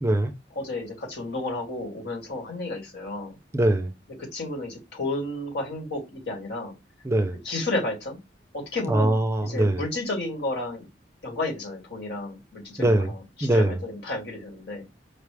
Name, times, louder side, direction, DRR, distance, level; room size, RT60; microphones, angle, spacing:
voice 1, 0.0-0.3 3.5-3.9 7.0-7.4 8.9-9.8 12.8-13.1 13.4-13.8, right 1 dB, 15° right, 0.5 m, -22 dB
voice 2, 0.6-3.4 4.2-6.7 7.4-8.2 8.5-9.1 9.4-10.9 11.2-15.0, left 2 dB, 70° left, 1.9 m, -32 dB
5.1 x 2.4 x 3.3 m
head